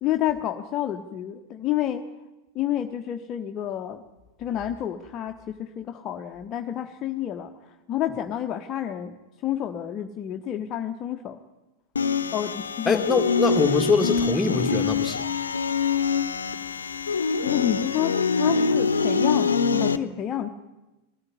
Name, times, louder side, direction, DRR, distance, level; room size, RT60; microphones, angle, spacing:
voice 1, 0.0-2.0 2.5-4.0 4.4-7.5 7.9-9.1 9.4-11.4 12.3-13.0 17.4-19.5 19.8-20.5, left 11 dB, 30° left, 6 dB, 1.0 m, -29 dB
sound 1, 12.0-20.0, left 5 dB, 70° left, 0.9 m, -24 dB
voice 2, 12.8-15.2, left 4 dB, 15° left, 7 dB, 1.8 m, -23 dB
20.0 x 14.0 x 9.7 m, 1.1 s
figure-of-eight pair, 90°, 0 cm